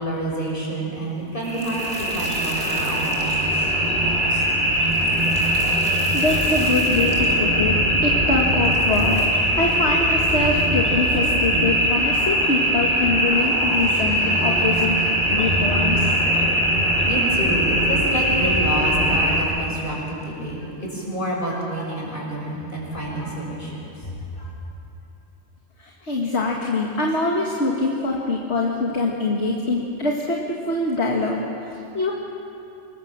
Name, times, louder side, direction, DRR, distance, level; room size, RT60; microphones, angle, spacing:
voice 1, 0.0-3.7 4.7-4.8 16.4-16.5 17.0-24.5, right 1 dB, 45° left, -3 dB, 6.2 m, -29 dB
sound 1, 1.4-19.4, equal, 55° right, 4.3 m, -21 dB
voice 2, 6.1-9.3 9.6-16.1 25.8-32.1, left 3 dB, 65° left, -1 dB, 2.1 m, -24 dB
26.0 x 21.0 x 7.5 m, 2.7 s
omnidirectional pair, 1.2 m